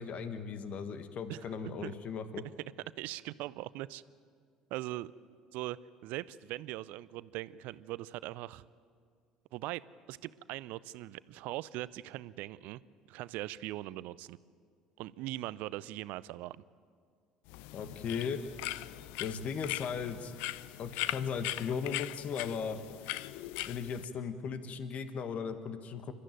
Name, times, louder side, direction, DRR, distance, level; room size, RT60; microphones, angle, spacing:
voice 1, 0.0-2.4 17.7-18.4 19.2-20.3 20.8-22.8 23.7-26.1, left 6 dB, 45° left, 10 dB, 1.5 m, -37 dB
voice 2, 3.0-4.0 4.7-5.1 5.5-5.8 6.0-8.6 9.5-9.8 10.1-12.8 13.1-14.4 15.0-16.6, right 16 dB, 60° right, 19 dB, 0.6 m, -40 dB
sound 1, 17.5-24.0, left 17 dB, 65° left, 0.5 m, -40 dB
28.5 x 13.5 x 9.2 m, 2.1 s
figure-of-eight pair, 60°, 3 cm